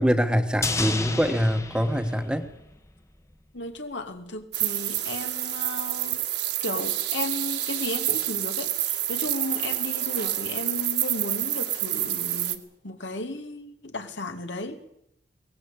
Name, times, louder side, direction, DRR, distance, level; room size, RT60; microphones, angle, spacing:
voice 1, 0.0-2.5, equal, 5° right, 1.4 m, -24 dB
sound 1, 0.6-3.0 3.3-3.4, left 3 dB, 15° left, 1.2 m, -32 dB
voice 2, 3.5-6.2 6.6-14.8, left 2 dB, 80° left, 2.6 m, -34 dB
sound 2, 4.5-12.6, right 13 dB, 60° right, 1.9 m, -28 dB
22.5 x 19.0 x 8.4 m
head